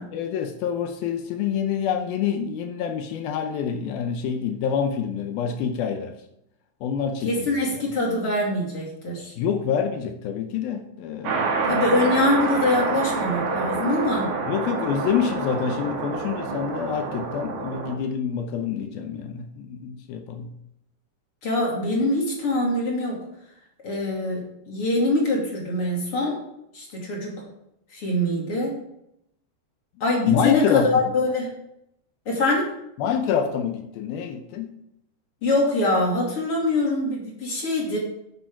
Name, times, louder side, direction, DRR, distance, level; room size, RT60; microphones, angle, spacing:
voice 1, 0.1-6.2 6.8-7.8 9.4-12.1 14.5-20.6 30.3-31.1 33.0-34.7, left 7 dB, 75° left, 6 dB, 2.5 m, -27 dB
voice 2, 7.3-9.3 11.6-14.3 21.4-23.2 23.8-26.4 26.7-27.4 27.9-28.8 30.0-31.5 32.3-32.7 35.4-38.0, left 2 dB, 40° left, -2 dB, 2.8 m, -24 dB
sound 1, 11.2-17.9, right 4 dB, 75° right, 3.9 m, -27 dB
10.5 x 8.7 x 4.6 m, 0.78 s
omnidirectional pair, 4.7 m